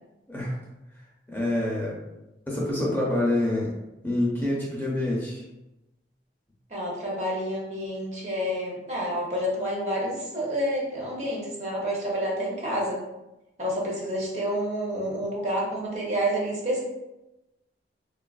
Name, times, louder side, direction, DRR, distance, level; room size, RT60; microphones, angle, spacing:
voice 1, 1.3-2.0 2.5-3.7 4.0-5.4, left 1 dB, 10° left, -5 dB, 0.5 m, -26 dB
voice 2, 6.7-13.0 13.6-16.8, equal, 40° right, -3 dB, 0.7 m, -29 dB
3.2 x 2.3 x 2.3 m, 0.97 s
head